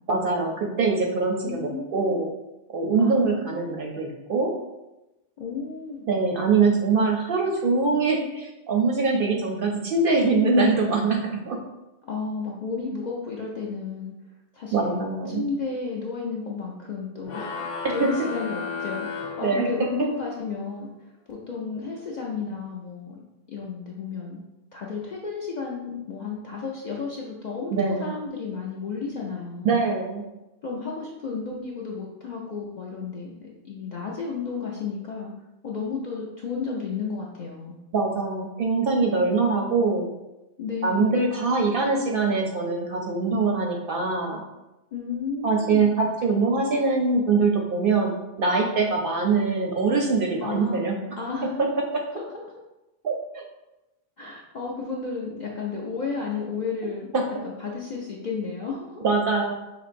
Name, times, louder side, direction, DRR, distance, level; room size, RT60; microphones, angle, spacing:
voice 1, 0.1-2.3 2.7-4.5 6.1-11.2 11.5-11.6 14.7-15.4 18.0-18.1 19.4-19.7 27.7-28.1 29.6-30.2 37.9-40.1 40.8-44.4 45.4-48.1 48.4-51.0 51.6-51.7 51.9-52.0 53.0-53.4 57.1-57.2 59.0-59.5, right 4 dB, 60° right, 0 dB, 0.6 m, -23 dB
voice 2, 1.4-2.2 3.0-3.7 5.4-6.1 12.0-14.1 14.5-17.7 17.9-20.9 21.3-23.2 23.5-24.4 24.7-29.8 30.6-35.3 35.6-37.8 40.6-41.2 44.9-45.9 50.4-50.8 51.2-51.5 52.1-52.6 54.2-57.1 57.4-59.0, left 5 dB, 55° left, -3 dB, 0.5 m, -33 dB
sound 1, 17.2-20.1, left 5 dB, 80° left, 1.0 m, -33 dB
5.0 x 2.9 x 2.5 m, 0.97 s
omnidirectional pair, 1.2 m